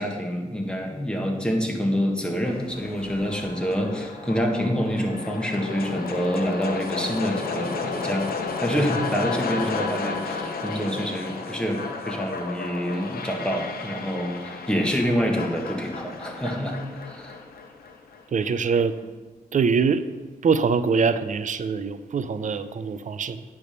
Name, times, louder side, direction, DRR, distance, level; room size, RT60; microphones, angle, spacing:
voice 1, 0.0-8.3 8.6-16.8 17.0-17.4, equal, 5° left, 1 dB, 1.7 m, -27 dB
sound 1, 2.4-18.5, left 4 dB, 80° left, 0.8 m, -33 dB
voice 2, 18.3-19.0 19.5-20.0 20.4-23.4, right 5 dB, 55° right, 13 dB, 0.5 m, -23 dB
9.4 x 3.5 x 6.8 m, 1.3 s
cardioid pair, 55°, 16 cm